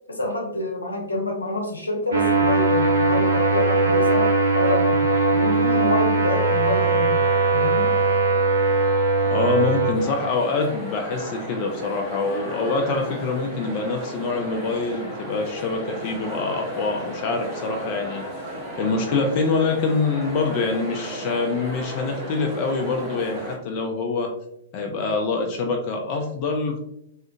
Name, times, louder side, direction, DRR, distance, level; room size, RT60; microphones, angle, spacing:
voice 1, 0.1-7.3 7.5-7.9, left 2 dB, 80° left, 1 dB, 0.7 m, -27 dB
sound 1, 2.1-9.9, right 3 dB, 75° right, 0.6 m, -20 dB
voice 2, 9.3-18.3 18.8-24.3 24.7-26.8, left 4 dB, 40° left, 2 dB, 0.4 m, -25 dB
sound 2, 9.9-23.6, equal, 5° right, 0.9 m, -34 dB
2.5 x 2.4 x 2.4 m, 0.76 s
figure-of-eight pair, 105°, 0 cm